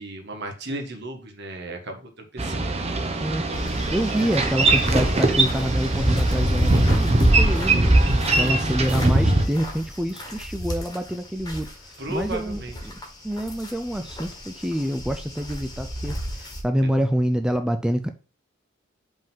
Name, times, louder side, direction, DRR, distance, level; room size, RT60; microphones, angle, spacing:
voice 1, 0.0-3.3 8.3-8.7 12.0-12.8, right 1 dB, 60° right, 4 dB, 1.4 m, -35 dB
Boat Water vehicle, 2.4-9.5, right 2 dB, 30° right, 0.8 m, -22 dB
sound 1, 3.5-9.7, left 2 dB, 50° left, 0.8 m, -39 dB
sound 2, 3.5-11.7 12.0-16.6, equal, 20° left, 1.5 m, -28 dB
voice 2, 3.9-7.9 8.3-11.7 12.1-12.6 13.2-18.1, equal, 5° right, 6 dB, 0.4 m, -26 dB
5.3 x 3.7 x 5.6 m, 0.34 s
head